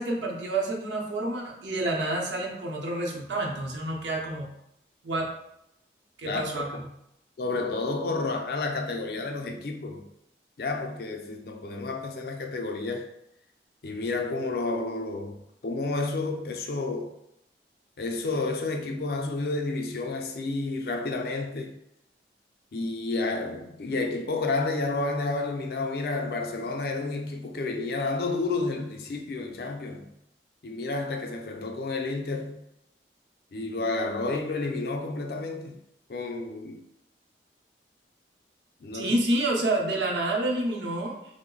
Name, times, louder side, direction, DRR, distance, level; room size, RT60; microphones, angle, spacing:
voice 1, 0.0-4.5 5.0-5.3 6.2-6.9 38.9-41.2, right 2 dB, 85° right, 0.7 m, -28 dB
voice 2, 6.2-6.8 7.4-10.1 10.6-13.1 13.8-17.2 18.0-21.8 22.7-30.1 30.6-32.6 33.5-35.8 36.1-36.8 38.8-39.2, left 3 dB, 55° left, 0.4 m, -30 dB
3.0 x 2.0 x 3.7 m
head